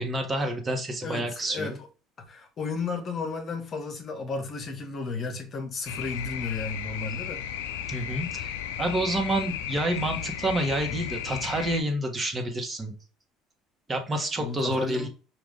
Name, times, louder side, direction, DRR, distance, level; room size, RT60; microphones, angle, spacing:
voice 1, 0.0-1.8 7.9-12.9 13.9-15.1, right 1 dB, 25° right, 1.2 m, -28 dB
voice 2, 1.0-1.7 2.3-7.4 10.9-11.0 14.4-15.1, left 4 dB, 45° left, 1.0 m, -33 dB
sound 1, 5.9-11.8, left 9 dB, 80° left, 0.4 m, -34 dB
4.9 x 2.5 x 3.6 m
hypercardioid pair, 70°, 0 cm